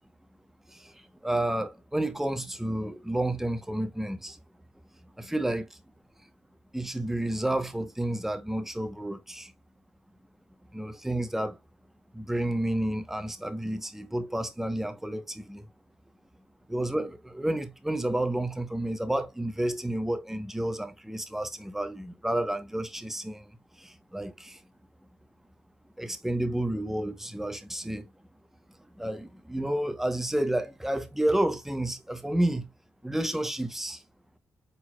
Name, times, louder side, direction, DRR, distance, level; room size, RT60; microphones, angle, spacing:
voice 1, 1.2-4.4 5.2-5.7 6.7-9.5 10.7-11.6 12.1-15.6 16.7-23.4 24.1-24.6 26.0-28.1 29.0-32.7 33.0-34.0, right 1 dB, 5° right, 0.9 m, -30 dB
4.5 x 4.0 x 2.3 m
cardioid pair, 65°, 5 cm